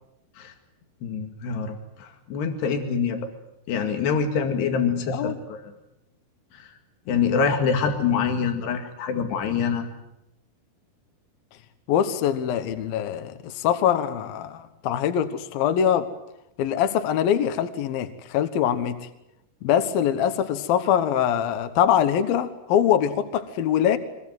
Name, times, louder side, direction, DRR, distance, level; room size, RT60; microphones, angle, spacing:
voice 1, 1.0-3.3 3.7-5.6 6.6-6.7 7.1-9.9, left 6 dB, 90° left, 5 dB, 4.3 m, -25 dB
voice 2, 11.9-16.1 16.6-19.1 19.6-24.0, left 9 dB, 70° left, 10 dB, 2.9 m, -23 dB
24.0 x 22.0 x 9.4 m, 0.88 s
omnidirectional pair, 4.6 m